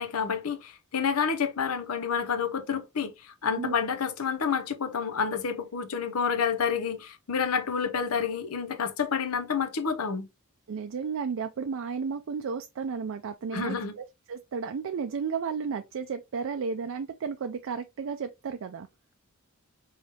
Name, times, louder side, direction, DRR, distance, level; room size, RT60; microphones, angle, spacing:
voice 1, 0.0-10.3 13.5-14.0, left 6 dB, 75° left, 0.7 m, -29 dB
voice 2, 10.7-18.9, right 5 dB, 60° right, 0.4 m, -33 dB
4.8 x 3.2 x 2.8 m
head